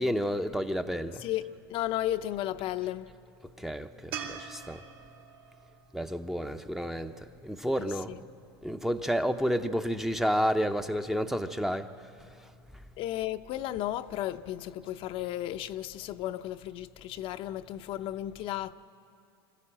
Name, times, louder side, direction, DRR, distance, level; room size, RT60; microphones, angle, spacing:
voice 1, 0.0-1.2 3.6-4.8 5.9-7.1 7.4-8.1 8.6-11.9, equal, 5° right, 0.6 m, -30 dB
voice 2, 1.2-3.1 7.8-8.2 13.0-18.7, left 13 dB, 45° left, 0.6 m, -34 dB
sound 1, 4.1-7.4 10.6-10.7, right 7 dB, 75° right, 2.5 m, -44 dB
25.0 x 14.0 x 8.8 m
supercardioid pair, 125°, 13 cm